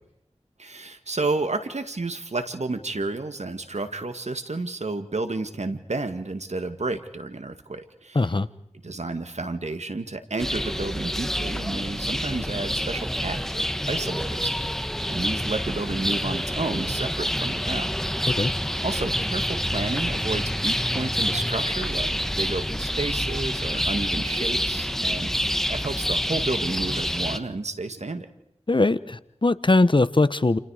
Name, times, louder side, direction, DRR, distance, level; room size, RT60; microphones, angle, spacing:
voice 1, 0.6-8.3 8.8-17.9 18.8-28.3, right 3 dB, 80° right, 8 dB, 2.0 m, -31 dB
voice 2, 8.1-8.5 18.3-18.5 28.7-30.6, left 2 dB, 45° left, 15 dB, 1.0 m, -21 dB
sound 1, 10.4-27.4, equal, 5° left, 1.4 m, -27 dB
29.0 x 29.0 x 5.0 m, 0.75 s
wide cardioid pair, 50°, 11 cm